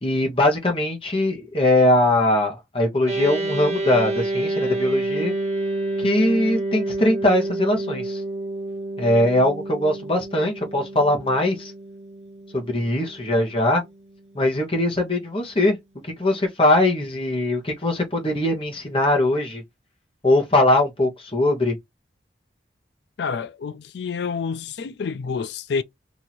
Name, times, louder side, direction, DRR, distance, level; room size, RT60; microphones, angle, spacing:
voice 1, 0.0-5.3 6.0-8.2 9.0-11.7 12.5-13.8 14.3-15.8 16.2-19.6 20.2-21.7, left 1 dB, 30° left, 1.0 m, -21 dB
sound 1, 3.1-14.6, right 2 dB, 35° right, 0.7 m, -29 dB
voice 2, 23.2-25.8, left 5 dB, 70° left, 0.4 m, -28 dB
3.0 x 2.7 x 4.1 m
head